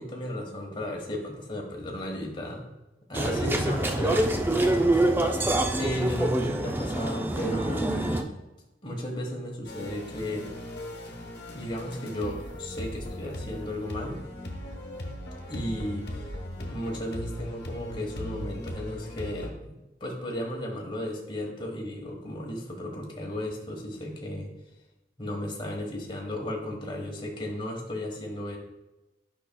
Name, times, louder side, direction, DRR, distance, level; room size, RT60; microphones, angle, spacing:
voice 1, 0.0-2.6 3.1-5.0 5.8-8.1 8.8-10.5 11.5-14.2 15.5-16.3 16.7-19.7 20.0-24.5 25.2-28.6, left 1 dB, 30° left, 0 dB, 1.2 m, -34 dB
sound 1, 3.1-8.2, right 1 dB, 10° right, 0.4 m, -25 dB
sound 2, 9.6-19.5, left 1 dB, 75° left, 1.1 m, -38 dB
8.5 x 5.5 x 2.3 m, 0.98 s
head